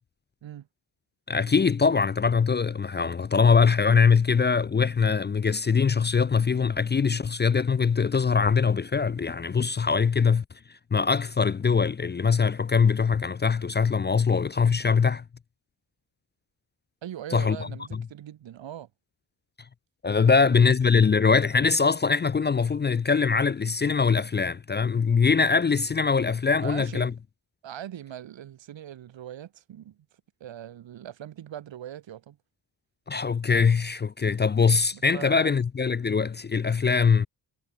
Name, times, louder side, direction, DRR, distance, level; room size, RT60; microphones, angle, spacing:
voice 1, 1.3-10.4 10.9-15.2 17.3-17.6 17.9-18.0 20.0-27.1 33.1-37.3, left 5 dB, 25° left, 0.4 m, -22 dB
voice 2, 17.0-18.9 20.1-21.1 26.6-27.1 27.6-30.0 30.4-32.4 34.9-35.5, right 11 dB, 85° right, 1.6 m, -41 dB
wide cardioid pair, 115°, 44 cm